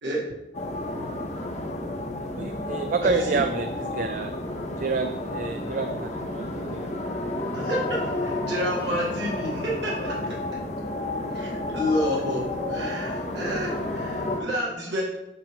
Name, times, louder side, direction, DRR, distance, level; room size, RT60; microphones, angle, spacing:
voice 1, 0.0-0.3 3.0-3.4 7.5-10.4 11.3-15.0, equal, 85° right, -4 dB, 1.6 m, -29 dB
sound 1, 0.5-14.4, left 2 dB, 40° left, 0.7 m, -31 dB
voice 2, 2.3-4.3 4.8-6.9, right 4 dB, 50° right, 7 dB, 0.4 m, -29 dB
7.6 x 3.0 x 5.0 m, 0.95 s
head